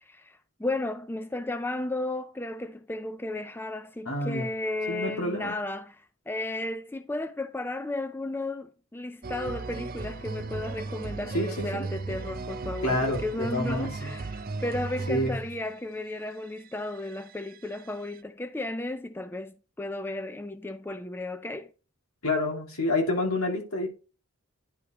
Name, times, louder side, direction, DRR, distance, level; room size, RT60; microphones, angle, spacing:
voice 1, 0.0-21.7, left 2 dB, 10° left, 0.4 m, -34 dB
voice 2, 4.0-4.5 4.9-5.6 11.3-11.9 12.8-14.1 15.1-15.3 22.2-23.9, left 1 dB, 85° left, 2.6 m, -28 dB
sound 1, 9.2-15.7 16.6-17.9 18.1-18.2, right 3 dB, 40° right, 0.5 m, -36 dB
10.5 x 5.0 x 3.0 m
head